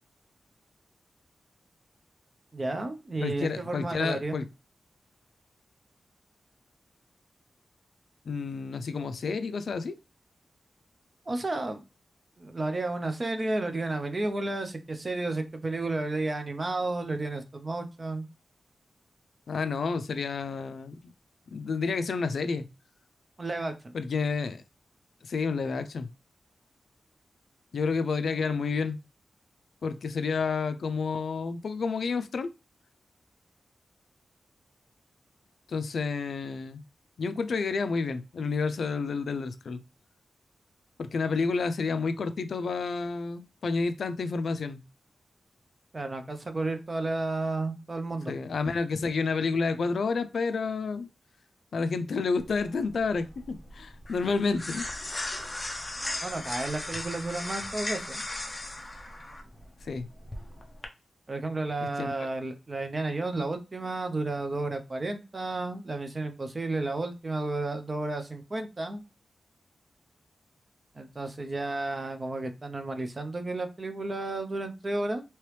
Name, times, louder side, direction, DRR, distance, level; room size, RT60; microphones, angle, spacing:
voice 1, 2.5-4.4 11.3-11.8 12.4-18.2 23.4-24.0 45.9-48.3 56.2-58.2 61.3-69.0 71.0-75.2, right 2 dB, 30° right, 0.5 m, -32 dB
voice 2, 3.2-4.5 8.3-10.0 19.5-21.1 21.5-22.7 23.9-24.6 25.2-26.1 27.7-29.0 29.8-32.5 35.7-36.8 37.2-39.8 41.0-44.8 48.3-51.1 51.7-55.1 59.8-60.1 62.0-62.3, left 4 dB, 70° left, 0.3 m, -30 dB
sound 1, 52.4-60.9, left 1 dB, 20° left, 0.6 m, -37 dB
3.1 x 2.9 x 3.1 m
wide cardioid pair, 155°, 0 cm